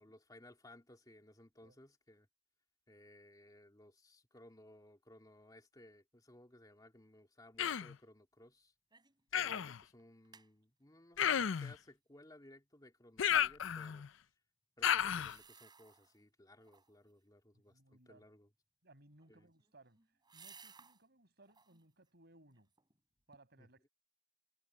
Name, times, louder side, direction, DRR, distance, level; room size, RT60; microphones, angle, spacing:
voice 1, 0.0-2.3 2.9-8.7 9.3-14.1 14.8-18.5 19.3-19.5 23.6-23.7, left 1 dB, 20° left, 2.7 m, -60 dB
Human voice, 7.6-8.0 9.3-9.8 11.2-11.7 13.2-14.1 14.8-15.4, left 9 dB, 80° left, 0.5 m, -33 dB
sound 1, 8.9-9.2 9.6-9.7 10.0-10.5 15.0-16.2 16.6-17.1 19.1-21.0 21.4-21.9 22.3-23.0 23.3-23.4, right 5 dB, 25° right, 7.1 m, -61 dB
voice 2, 17.5-18.3 18.8-20.0 20.3-22.7 23.3-23.9, right 2 dB, 60° right, 6.1 m, -64 dB
head